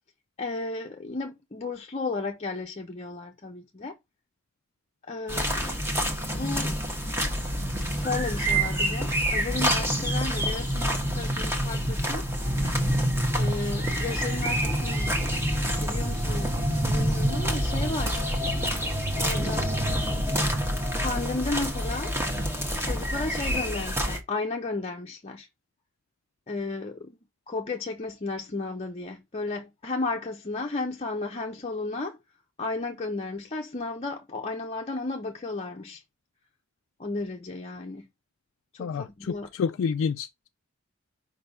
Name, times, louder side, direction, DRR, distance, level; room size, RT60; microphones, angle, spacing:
voice 1, 0.4-4.0 5.1-5.8 6.4-6.8 8.0-12.3 12.7-12.9 13.4-15.2 15.5-16.6 16.8-18.2 19.1-19.7 21.0-22.1 22.8-25.5 26.5-27.2 27.5-32.2 32.6-36.0 37.0-38.1 38.7-39.5, left 3 dB, 30° left, 0.7 m, -33 dB
sound 1, 5.3-24.2, equal, 10° right, 1.3 m, -27 dB
voice 2, 38.8-40.3, left 6 dB, 65° left, 0.3 m, -29 dB
5.1 x 3.4 x 5.4 m
head